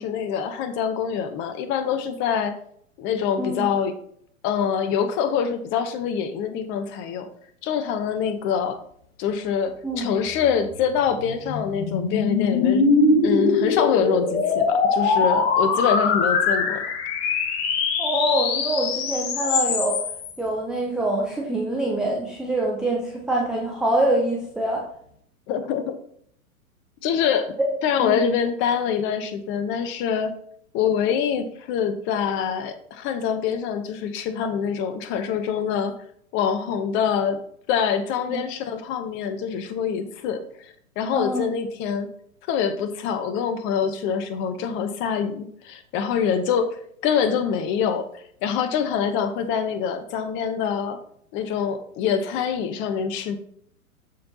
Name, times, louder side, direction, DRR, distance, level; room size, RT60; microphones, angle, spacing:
voice 1, 0.0-2.6 3.0-3.9 4.4-7.3 7.6-8.8 9.2-12.8 13.2-16.8 25.5-26.0 27.0-27.5 27.8-30.3 30.7-35.9 36.3-37.4 37.7-42.1 42.5-48.1 48.4-51.0 51.3-53.4, left 7 dB, 25° left, 10 dB, 0.8 m, -25 dB
voice 2, 3.4-3.7 9.8-10.2 18.0-20.0 20.4-24.8 27.6-27.7 28.0-28.2 38.3-38.4 41.1-41.4, right 1 dB, ahead, -3 dB, 0.4 m, -25 dB
sound 1, 10.6-20.3, left 4 dB, 45° left, 1.2 m, -22 dB
12.5 x 4.3 x 2.7 m, 0.64 s
figure-of-eight pair, 105°, 43 cm